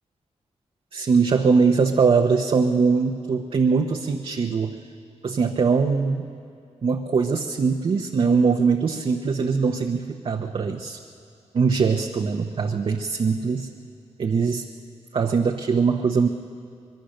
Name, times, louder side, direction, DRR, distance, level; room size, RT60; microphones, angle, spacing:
voice 1, 0.9-4.8 5.2-6.3 6.8-11.0 11.5-13.7 14.2-14.7 15.1-16.3, right 5 dB, 55° right, 2 dB, 1.0 m, -21 dB
24.5 x 22.0 x 6.5 m, 2.4 s
wide cardioid pair, 135°, 11 cm